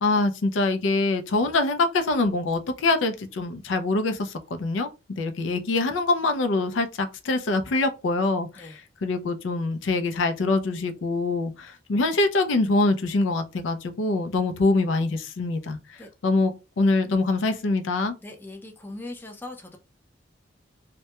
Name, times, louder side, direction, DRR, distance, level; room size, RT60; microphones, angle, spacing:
voice 1, 0.0-4.3 4.6-4.9 5.2-15.8 16.2-18.1, left 3 dB, 80° left, 0.4 m, -24 dB
voice 2, 18.2-19.8, left 2 dB, 10° left, 0.4 m, -40 dB
2.2 x 2.1 x 2.8 m
head